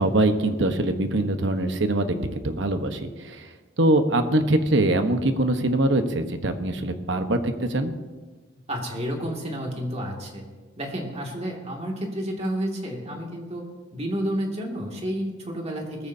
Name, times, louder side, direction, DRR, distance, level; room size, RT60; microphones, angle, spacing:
voice 1, 0.0-2.2 2.4-3.4 3.8-7.9, right 1 dB, 70° right, 7 dB, 1.1 m, -23 dB
voice 2, 8.5-10.4 10.8-13.6 13.9-16.1, equal, 35° right, 0 dB, 2.3 m, -30 dB
19.5 x 14.0 x 2.8 m, 1.3 s
head